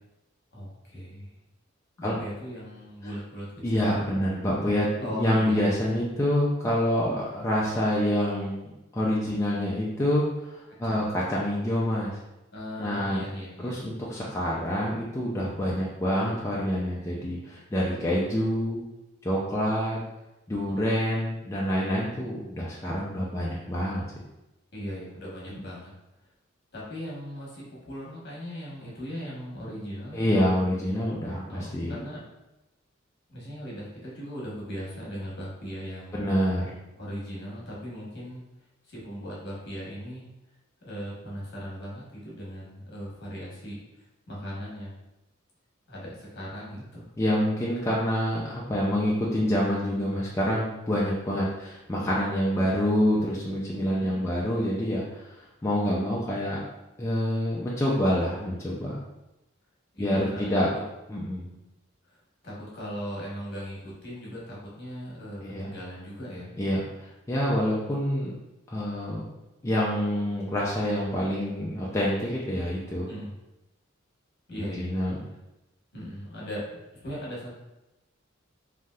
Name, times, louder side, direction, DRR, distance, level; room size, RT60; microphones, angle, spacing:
voice 1, 0.5-1.3 2.0-4.2 5.0-5.7 10.8-11.1 12.5-13.8 24.7-25.9 26.7-30.2 31.5-32.2 33.3-36.2 36.9-38.4 38.9-40.3 40.8-43.8 44.3-45.0 45.9-47.1 53.9-54.3 59.9-60.8 62.1-62.2 62.4-66.5 73.1-73.3 74.5-74.9 75.9-76.7 77.0-77.5, equal, 55° left, -5 dB, 1.1 m, -38 dB
voice 2, 3.6-10.2 10.5-12.1 12.8-13.2 13.6-18.8 19.2-20.0 20.5-24.0 25.5-25.6 30.1-32.0 36.1-36.7 47.2-55.2 55.6-56.6 57.0-59.0 60.0-60.7 61.1-61.5 65.4-65.7 66.6-68.3 68.7-69.2 69.6-73.1 74.6-75.2, equal, 15° left, -6 dB, 0.4 m, -27 dB
3.3 x 2.6 x 2.3 m, 0.95 s
head